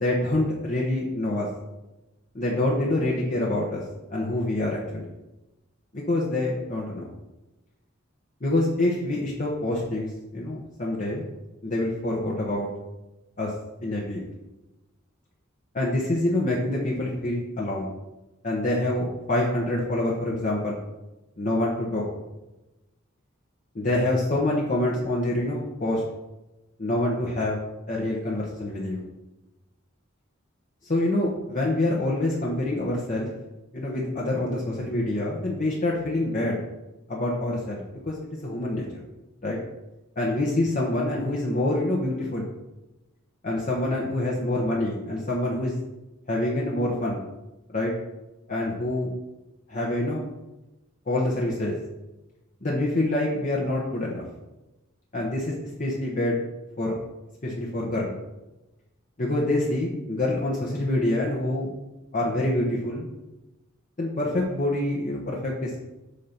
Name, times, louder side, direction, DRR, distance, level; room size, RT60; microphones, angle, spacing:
voice 1, 0.0-1.5 2.3-3.8 4.1-5.1 5.9-7.1 8.4-11.2 11.6-12.7 13.4-13.5 13.8-14.2 15.7-17.9 18.4-20.8 21.4-22.0 23.7-26.0 26.8-27.6 27.9-29.0 30.8-33.3 33.7-36.6 37.1-38.1 38.4-38.8 39.4-39.6 40.2-42.5 43.4-45.8 46.3-47.2 47.7-47.9 48.5-49.1 49.7-50.2 51.1-51.8 52.6-54.2 55.1-56.4 56.8-57.0 57.4-58.2 59.2-61.7 62.1-63.1 64.0-65.8, left 1 dB, 40° left, -3 dB, 1.0 m, -26 dB
8.3 x 2.8 x 5.9 m, 1.0 s
head